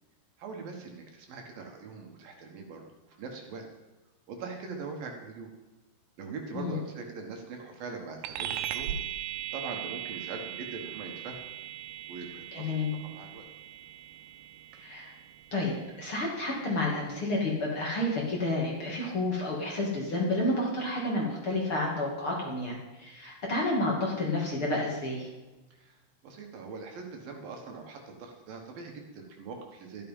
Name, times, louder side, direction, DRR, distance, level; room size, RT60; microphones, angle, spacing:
voice 1, 0.4-3.7 4.3-5.5 6.2-9.0 9.5-11.5 12.1-12.8 13.0-13.5 25.7-30.1, right 4 dB, 65° right, 3 dB, 3.1 m, -42 dB
sound 1, 8.2-18.1, right 11 dB, 85° right, 2.7 m, -40 dB
voice 2, 12.5-12.9 14.8-15.1 15.5-25.3, left 2 dB, 35° left, -3 dB, 2.9 m, -30 dB
13.0 x 12.5 x 5.5 m, 1.1 s
omnidirectional pair, 4.7 m